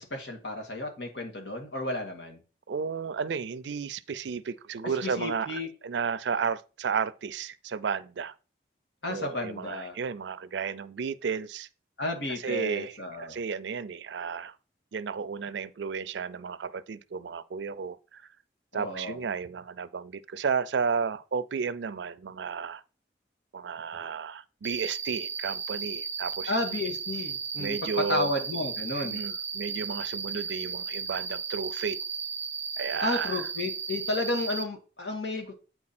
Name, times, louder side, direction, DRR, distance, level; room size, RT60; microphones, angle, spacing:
voice 1, 0.0-2.4 4.8-5.7 9.0-10.0 12.0-13.4 18.7-19.2 26.5-29.2 33.0-35.5, left 2 dB, 85° left, 1.8 m, -32 dB
voice 2, 2.7-8.3 9.1-11.7 12.3-14.6 14.9-18.2 18.7-22.8 23.5-26.5 27.6-28.3 28.9-32.0 32.8-33.4, right 6 dB, 80° right, 0.4 m, -33 dB
Cricket, 24.6-34.6, right 5 dB, 10° right, 0.4 m, -35 dB
8.5 x 4.5 x 4.2 m
head